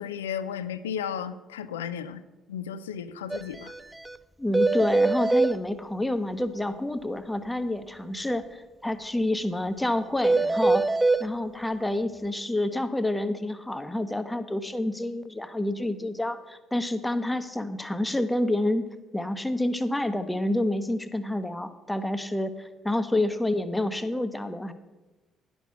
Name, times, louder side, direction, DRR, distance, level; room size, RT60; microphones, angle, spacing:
voice 1, 0.0-2.2 2.5-3.7, left 8 dB, 85° left, 14 dB, 0.4 m, -34 dB
sound 1, 3.3-3.4 3.7-3.8 4.1-4.2 4.5-5.5 10.2-11.2, right 3 dB, 10° right, 0.4 m, -22 dB
voice 2, 4.4-10.8 11.2-18.9 19.1-24.7, left 1 dB, 10° left, 10 dB, 0.8 m, -28 dB
10.0 x 6.2 x 6.9 m, 1.1 s
hypercardioid pair, 50°, 0 cm